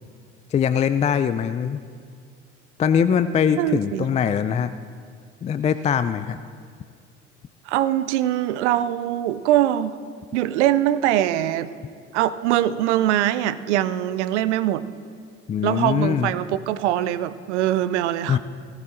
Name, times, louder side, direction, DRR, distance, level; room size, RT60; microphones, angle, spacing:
voice 1, 0.5-1.8 2.8-4.7 5.4-6.4 15.5-16.3 18.3-18.4, left 7 dB, 20° left, 12 dB, 0.3 m, -22 dB
voice 2, 3.6-4.1 7.7-10.0 10.3-11.7 12.1-14.8 15.6-18.4, right 12 dB, 75° right, 15 dB, 0.6 m, -22 dB
18.5 x 12.5 x 2.6 m, 2.1 s
figure-of-eight pair, 55°, 35 cm